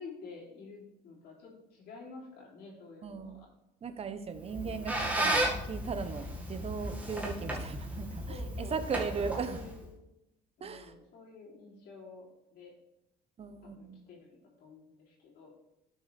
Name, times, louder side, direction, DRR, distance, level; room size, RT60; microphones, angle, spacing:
voice 1, 0.0-3.5 4.4-4.9 8.3-9.9 10.6-12.7 13.6-15.5, left 4 dB, 70° left, -4 dB, 3.3 m, -50 dB
voice 2, 3.0-3.4 3.8-9.6 10.6-10.9 13.4-14.1, right 5 dB, 35° right, 10 dB, 0.9 m, -38 dB
Squeak, 4.4-9.8, right 1 dB, 10° right, 2.0 m, -34 dB
11.5 x 6.4 x 3.5 m, 0.90 s
cardioid pair, 110°, 17 cm